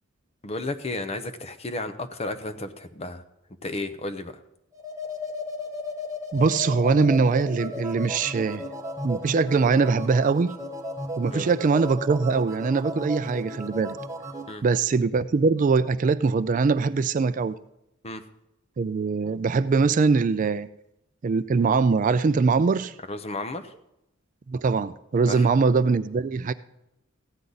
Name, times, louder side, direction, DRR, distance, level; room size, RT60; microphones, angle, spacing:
voice 1, 0.4-3.2 3.6-4.3 11.3-11.5 14.5-14.6 18.0-18.2 23.1-23.7 25.3-25.5, left 2 dB, 30° left, 8 dB, 0.8 m, -33 dB
sound 1, 4.7-14.6, left 1 dB, 15° right, 1.4 m, -34 dB
voice 2, 6.3-8.6 9.0-10.5 11.2-14.0 14.6-17.5 18.8-20.7 21.2-22.9 24.5-26.5, right 4 dB, 40° right, 14 dB, 0.3 m, -22 dB
15.0 x 9.7 x 4.0 m, 0.86 s
head